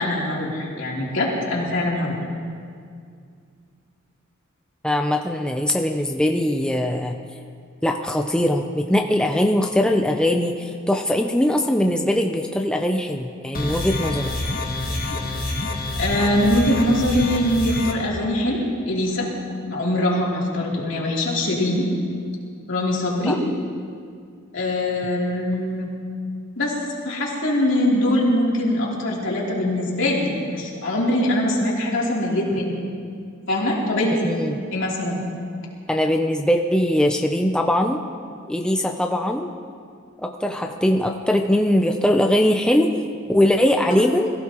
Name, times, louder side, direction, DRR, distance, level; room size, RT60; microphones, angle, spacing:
voice 1, 0.0-2.2 15.9-18.6 18.9-19.3 19.6-21.9 22.7-23.4 24.5-25.9 26.6-26.7 27.0-32.7 33.5-35.2, left 1 dB, 65° left, -4 dB, 3.2 m, -22 dB
voice 2, 4.8-7.2 7.8-14.3 23.3-23.4 34.2-34.6 35.9-38.0 38.5-39.5 40.2-42.9 43.3-44.3, left 1 dB, 5° left, 3 dB, 0.5 m, -21 dB
sound 1, 13.5-17.9, left 2 dB, 45° left, 1.4 m, -27 dB
22.5 x 15.5 x 3.0 m, 2.3 s
head